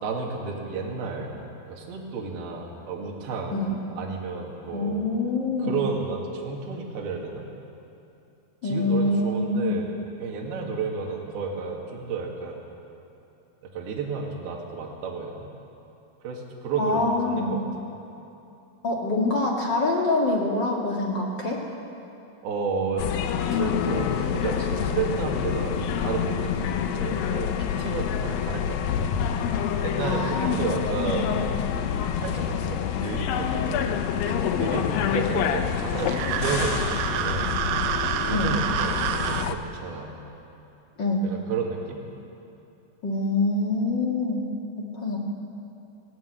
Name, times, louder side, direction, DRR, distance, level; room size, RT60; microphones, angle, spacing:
voice 1, 0.0-1.3 1.7-3.6 4.0-5.1 5.6-7.5 8.6-9.9 10.2-12.6 13.6-15.5 16.2-17.7 22.4-23.1 23.5-28.8 29.8-31.5 32.1-34.1 34.4-37.5 38.3-40.1 41.2-42.0, right 4 dB, 60° right, -1 dB, 3.8 m, -32 dB
voice 2, 4.7-5.7 8.6-9.8 16.8-17.6 18.8-21.6 30.0-30.5 31.0-31.4 38.3-38.5 41.0-41.2 43.0-44.5 44.8-45.2, left 2 dB, 40° left, -2 dB, 1.6 m, -25 dB
sound 1, 23.0-39.5, left 8 dB, 90° left, 2.0 m, -27 dB
sound 2, 36.0-39.5, right 11 dB, 85° right, 2.9 m, -28 dB
18.0 x 17.5 x 8.3 m, 2.9 s
omnidirectional pair, 5.3 m